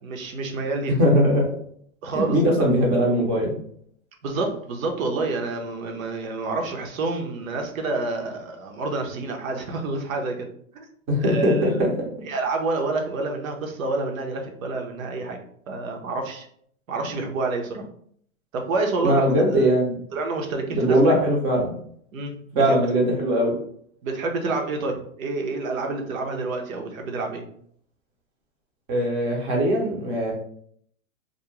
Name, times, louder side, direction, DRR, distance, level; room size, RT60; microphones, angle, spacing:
voice 1, 0.0-0.9 2.0-2.7 4.2-10.5 10.7-10.9 11.2-11.7 12.2-15.4 15.7-16.5 16.9-17.8 18.5-19.6 20.1-21.0 22.1-22.9 24.0-27.4, right 3 dB, 75° right, 3 dB, 0.8 m, -28 dB
voice 2, 1.0-1.4 2.1-3.6 11.1-12.1 19.0-20.0 20.7-21.8 22.6-23.5 28.9-30.3, equal, 20° right, -1 dB, 0.5 m, -20 dB
2.5 x 2.0 x 3.0 m, 0.63 s
hypercardioid pair, 140°, 42 cm